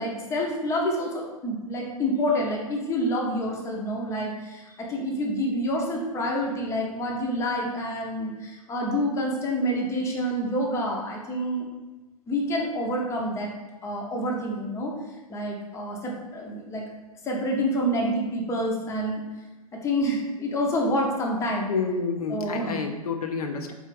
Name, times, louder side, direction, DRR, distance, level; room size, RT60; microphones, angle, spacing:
voice 1, 0.0-11.7 12.3-13.5 13.8-14.9 15.3-16.8 17.2-19.2 19.8-21.7 22.3-22.8, equal, 15° left, -1 dB, 0.7 m, -27 dB
voice 2, 21.7-23.7, left 4 dB, 80° left, 4 dB, 0.5 m, -29 dB
4.3 x 3.2 x 3.3 m, 1.1 s
hypercardioid pair, 120°, 19 cm